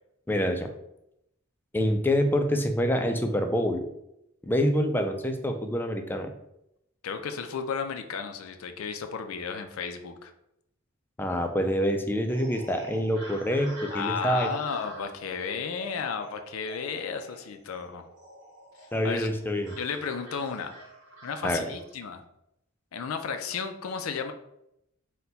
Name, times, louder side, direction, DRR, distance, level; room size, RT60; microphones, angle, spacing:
voice 1, 0.3-0.7 1.7-3.8 4.4-6.3 11.2-14.5 18.9-19.7 21.4-21.6, equal, 10° left, 6 dB, 0.4 m, -26 dB
voice 2, 7.0-10.3 13.9-18.0 18.8-19.3 19.8-20.8 21.2-22.2 22.9-24.3, left 6 dB, 90° left, 7 dB, 0.5 m, -33 dB
sound 1, 12.3-21.9, right 1 dB, 60° right, 1.5 m, -47 dB
4.2 x 2.2 x 3.9 m, 0.80 s
head